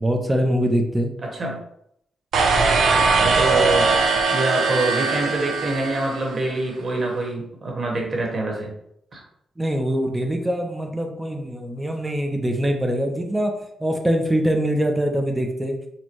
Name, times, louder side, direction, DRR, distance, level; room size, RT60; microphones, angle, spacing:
voice 1, 0.0-1.1 9.6-15.8, equal, 10° right, 3 dB, 0.5 m, -23 dB
voice 2, 1.2-1.6 3.2-3.9 4.3-8.7 9.1-9.2, right 2 dB, 40° right, 0 dB, 1.1 m, -25 dB
sound 1, 2.3-6.5, right 4 dB, 90° right, 0.7 m, -20 dB
4.3 x 2.1 x 4.5 m, 0.74 s
wide cardioid pair, 130°, 0 cm